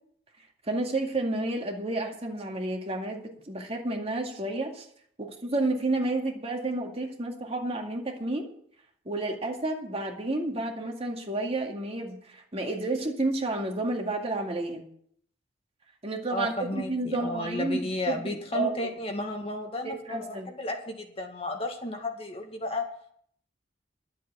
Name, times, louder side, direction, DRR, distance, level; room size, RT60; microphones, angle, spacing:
voice 1, 0.7-4.9 5.2-8.5 9.1-14.8 16.0-17.8 18.1-18.9 19.8-20.5, right 2 dB, 35° right, 2 dB, 2.1 m, -31 dB
voice 2, 16.3-22.8, left 2 dB, 30° left, 2 dB, 1.9 m, -33 dB
12.0 x 7.6 x 8.7 m, 0.64 s
head